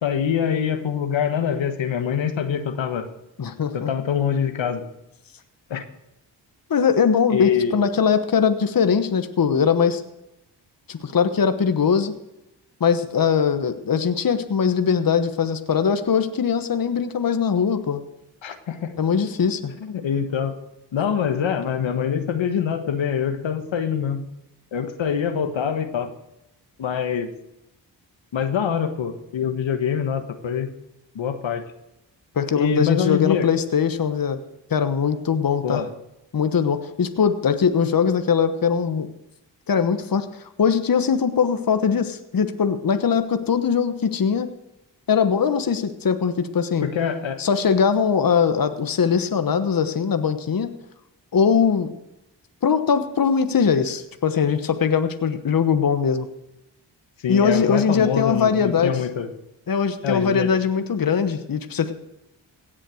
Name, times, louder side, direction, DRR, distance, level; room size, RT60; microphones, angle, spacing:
voice 1, 0.0-3.1 3.7-4.9 5.7-5.8 7.3-7.8 18.4-19.0 19.8-20.6 20.9-24.2 24.7-26.1 26.8-27.3 28.3-30.7 31.1-31.6 32.6-33.5 35.6-35.9 46.8-47.4 57.2-59.3 60.0-60.5, left 7 dB, 75° left, 8 dB, 1.3 m, -24 dB
voice 2, 3.4-3.9 6.7-10.0 10.9-12.1 12.8-18.0 19.0-19.7 32.4-34.4 34.7-35.8 36.3-39.1 39.7-40.3 40.6-44.5 45.1-46.9 47.4-50.7 51.3-51.9 52.6-56.3 57.3-59.0 59.7-61.9, left 6 dB, 45° left, 9 dB, 1.2 m, -21 dB
17.0 x 7.6 x 6.3 m, 0.87 s
cardioid pair, 50°, 46 cm